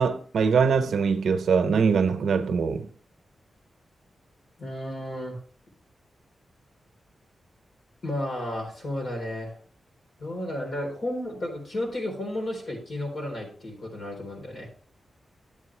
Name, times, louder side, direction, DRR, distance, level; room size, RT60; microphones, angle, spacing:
voice 1, 0.0-2.9, right 5 dB, 85° right, 1.0 m, -22 dB
voice 2, 4.6-5.4 8.0-9.6 10.2-14.7, left 1 dB, 50° left, 4.0 m, -33 dB
10.5 x 8.1 x 3.3 m
wide cardioid pair, 175°, 0 cm